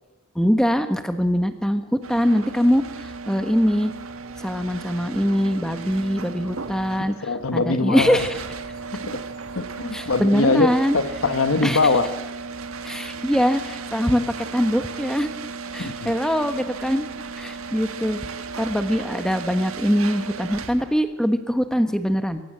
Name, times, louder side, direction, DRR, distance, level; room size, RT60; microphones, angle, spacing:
voice 1, 0.3-3.9 4.4-8.4 9.9-11.0 11.6-11.8 12.8-15.3 15.7-17.1 17.4-18.3 18.6-22.4, equal, 5° left, 8 dB, 1.4 m, -22 dB
sound 1, 2.0-21.1, right 4 dB, 75° right, 1.6 m, -35 dB
voice 2, 7.0-8.2 8.9-9.2 9.5-12.1 15.8-16.1, left 3 dB, 75° left, 10 dB, 1.1 m, -23 dB
22.5 x 18.5 x 7.6 m, 1.1 s
head